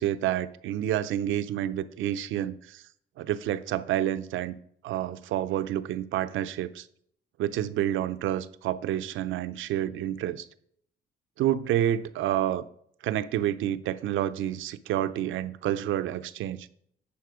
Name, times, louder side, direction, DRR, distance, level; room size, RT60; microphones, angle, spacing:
voice 1, 0.0-2.8 3.2-4.5 4.8-6.9 7.4-10.5 11.4-12.6 13.0-16.7, right 12 dB, 80° right, 0.5 m, -29 dB
10.5 x 4.3 x 4.9 m
cardioid pair, 90°, 20 cm